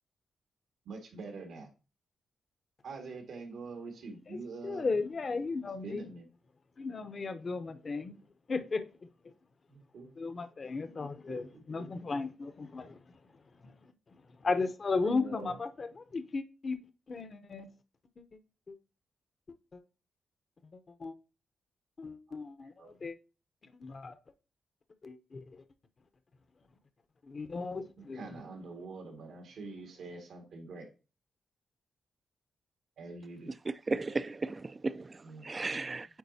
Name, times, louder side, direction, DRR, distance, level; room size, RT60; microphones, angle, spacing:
voice 1, 0.8-1.7 2.8-4.9 5.8-6.3 9.7-10.1 11.3-11.9 15.0-15.6 22.3-22.4 22.8-22.9 28.0-30.9 33.0-33.5 35.2-35.5, right 3 dB, 80° right, 1.8 m, -45 dB
voice 2, 4.3-6.0 6.8-8.2 8.5-8.8 10.2-13.0 13.6-16.8 17.1-17.7 18.2-18.3 18.7-18.8 19.7-19.8 20.7-21.1 22.0-23.2 23.6-24.2 25.0-25.6 27.3-28.2, left 4 dB, 45° left, 0.7 m, -36 dB
voice 3, 33.9-36.1, right 3 dB, 30° right, 0.3 m, -35 dB
9.2 x 3.9 x 2.7 m
cardioid pair, 85°, 0 cm